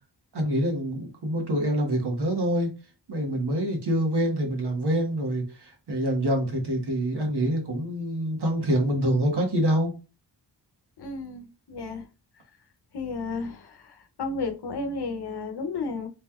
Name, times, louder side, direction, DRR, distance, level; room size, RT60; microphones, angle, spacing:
voice 1, 0.3-2.7 3.1-10.0, equal, 65° right, 1.4 m, -26 dB
voice 2, 11.0-12.1 12.9-16.1, left 3 dB, 65° left, 0.8 m, -33 dB
4.1 x 3.2 x 2.3 m
wide cardioid pair, 150°, 43 cm